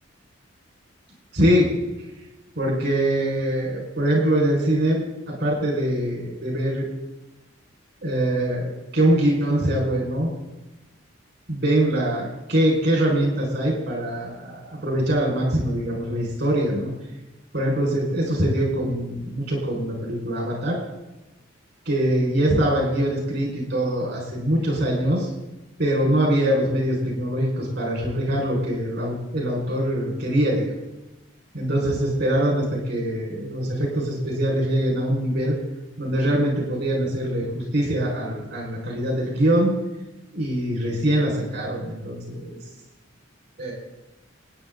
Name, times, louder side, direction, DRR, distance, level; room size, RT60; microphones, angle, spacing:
voice 1, 1.3-1.7 2.6-6.9 8.0-10.3 11.5-16.9 17.5-20.8 21.9-25.3 25.8-30.7 31.5-35.6 36.0-39.7 40.3-42.6 43.6-43.7, right 1 dB, 55° right, -2 dB, 5.7 m, -23 dB
28.0 x 10.0 x 4.1 m, 1.0 s
head